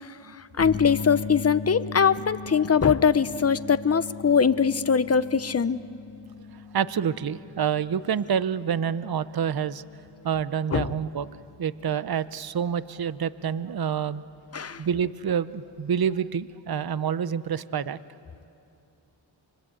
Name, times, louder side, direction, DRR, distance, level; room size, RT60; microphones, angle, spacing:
sound 1, 0.6-16.5, left 5 dB, 65° left, 1.6 m, -41 dB
voice 1, 0.6-5.8 10.7-11.0 14.5-14.8, left 6 dB, 30° left, 14 dB, 0.8 m, -22 dB
voice 2, 6.7-9.8 10.2-11.3 11.6-14.2 14.8-18.0, right 8 dB, 50° right, 16 dB, 0.7 m, -27 dB
25.5 x 22.0 x 8.4 m, 2.7 s
cardioid pair, 45°, 47 cm